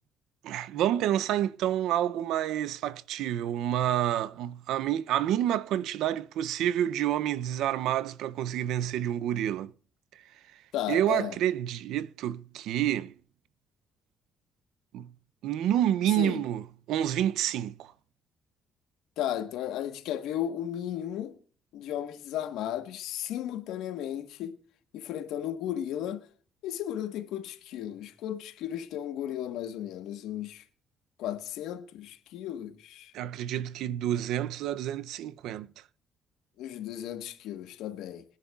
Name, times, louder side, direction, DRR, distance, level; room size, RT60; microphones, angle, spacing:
voice 1, 0.4-9.7 10.9-13.1 14.9-15.1 15.4-17.9 33.1-35.7, right 11 dB, 75° right, 0.5 m, -28 dB
voice 2, 10.7-11.4 16.2-16.4 19.2-21.3 21.7-24.6 24.9-26.3 26.6-30.6 31.2-33.1 36.6-38.2, left 11 dB, 80° left, 1.3 m, -35 dB
23.0 x 10.5 x 2.3 m
cardioid pair, 140°, 0 cm